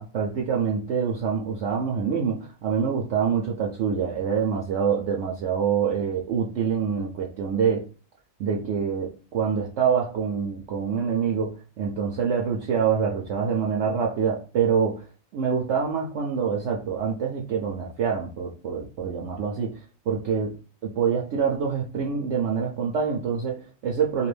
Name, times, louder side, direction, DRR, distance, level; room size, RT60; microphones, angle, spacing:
voice 1, 0.0-7.9 8.4-20.5 20.8-24.3, right 6 dB, 65° right, -1 dB, 0.8 m, -26 dB
2.7 x 2.5 x 3.2 m, 0.36 s
omnidirectional pair, 1.4 m